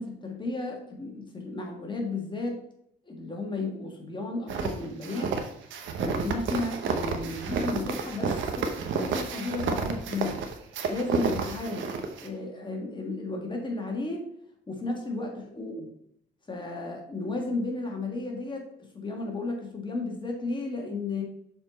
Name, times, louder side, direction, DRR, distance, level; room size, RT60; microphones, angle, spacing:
voice 1, 0.0-2.6 3.1-5.4 6.0-10.4 10.9-11.9 12.2-14.3 14.7-15.9 16.5-18.7 18.9-21.2, left 2 dB, 25° left, 1 dB, 1.7 m, -33 dB
sound 1, 4.5-12.3, right 5 dB, 80° right, 0.9 m, -30 dB
6.7 x 4.2 x 4.2 m, 0.72 s
cardioid pair, 90°, 20 cm